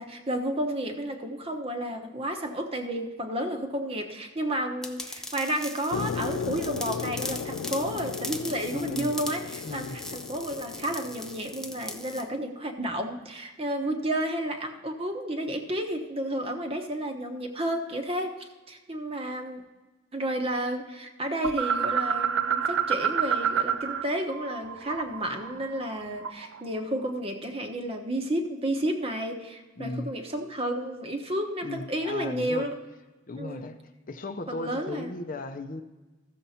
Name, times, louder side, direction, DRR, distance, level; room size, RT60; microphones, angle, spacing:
voice 1, 0.0-19.6 20.1-32.8 33.4-33.7 34.5-35.1, right 1 dB, 30° right, 5 dB, 1.0 m, -31 dB
sound 1, 4.8-12.3, left 1 dB, 5° left, 0.5 m, -40 dB
sound 2, 5.9-12.2, left 6 dB, 75° left, 0.3 m, -36 dB
voice 2, 8.7-9.1 9.6-10.0 29.8-30.1 31.6-32.7 33.3-33.8 34.1-35.8, left 2 dB, 45° left, 8 dB, 0.6 m, -36 dB
sound 3, 21.4-24.0 24.3-26.6, right 7 dB, 70° right, 0.5 m, -28 dB
14.0 x 7.0 x 4.2 m, 1.2 s
head